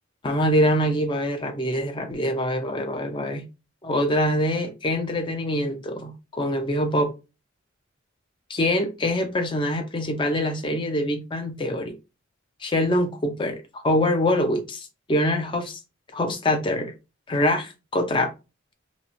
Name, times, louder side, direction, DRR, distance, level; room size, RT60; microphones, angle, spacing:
voice 1, 0.2-3.4 3.8-7.1 8.5-11.9 12.6-15.8 16.1-16.9 17.3-18.3, left 1 dB, 25° left, 0.4 m, -24 dB
2.8 x 2.1 x 2.5 m
head